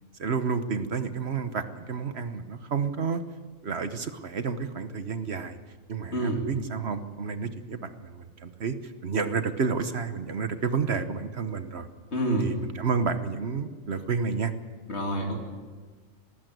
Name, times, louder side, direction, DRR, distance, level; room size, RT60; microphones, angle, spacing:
voice 1, 0.2-3.2 3.6-5.6 5.9-8.8 9.0-11.9 12.4-14.5, right 5 dB, 55° right, 10 dB, 1.3 m, -30 dB
voice 2, 6.1-6.4 12.1-12.5 14.9-15.4, right 1 dB, 55° left, 1 dB, 3.2 m, -27 dB
19.0 x 15.5 x 9.3 m, 1.4 s
omnidirectional pair, 1.4 m